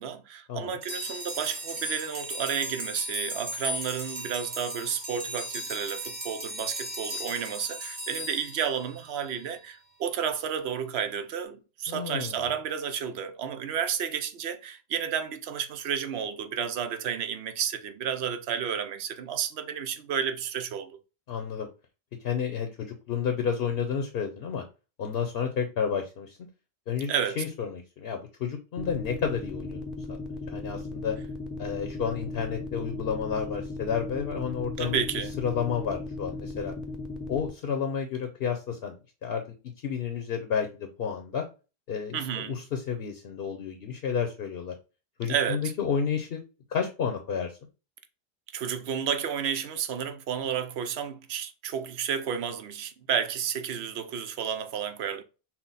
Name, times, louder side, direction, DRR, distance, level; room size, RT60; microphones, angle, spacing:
voice 1, 0.0-21.0 27.1-27.4 34.8-35.3 42.1-42.6 45.3-45.6 48.5-55.2, right 8 dB, 85° right, 0.9 m, -31 dB
sound 1, 0.8-9.3, equal, 60° right, 1.3 m, -36 dB
voice 2, 11.9-12.5 21.3-21.7 22.2-24.6 25.0-26.4 26.9-27.1 27.4-29.8 30.5-31.1 31.6-35.0 35.4-36.7 37.3-39.0 39.2-39.4 39.8-41.4 41.9-44.7 45.2-46.4 46.7-47.5, left 7 dB, 70° left, 0.9 m, -31 dB
sound 2, 28.8-37.5, left 3 dB, ahead, 0.5 m, -36 dB
5.7 x 2.2 x 4.0 m
omnidirectional pair, 1.1 m